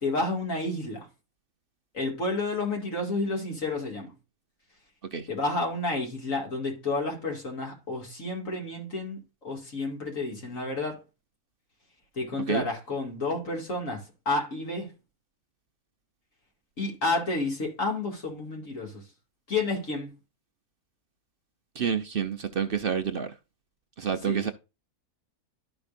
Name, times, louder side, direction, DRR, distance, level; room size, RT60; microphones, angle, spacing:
voice 1, 0.0-1.1 1.9-4.1 5.3-11.0 12.1-14.9 16.8-19.0 19.5-20.1 24.2-24.4, left 2 dB, 55° left, 2.6 m, -30 dB
voice 2, 21.8-23.3 24.0-24.5, right 7 dB, 55° right, 0.6 m, -28 dB
12.5 x 5.2 x 2.5 m
omnidirectional pair, 1.6 m